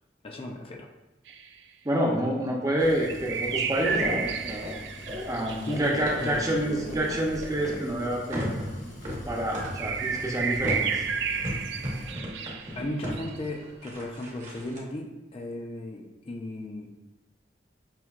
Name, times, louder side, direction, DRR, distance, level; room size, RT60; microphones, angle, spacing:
voice 1, 0.2-0.9 5.6-6.5 12.7-16.9, left 1 dB, 30° left, 1 dB, 0.4 m, -35 dB
sound 1, 1.3-1.4 3.1-6.4 9.5-13.4, right 6 dB, 65° right, 0.3 m, -32 dB
voice 2, 1.8-4.7 5.3-8.5 9.2-11.0, right 1 dB, 20° right, -1 dB, 0.6 m, -28 dB
sound 2, 2.8-12.1, equal, 85° left, 1.3 m, -44 dB
sound 3, 3.9-7.9 8.3-14.8, left 1 dB, 40° right, 0.9 m, -36 dB
5.7 x 2.7 x 2.3 m, 1.1 s
head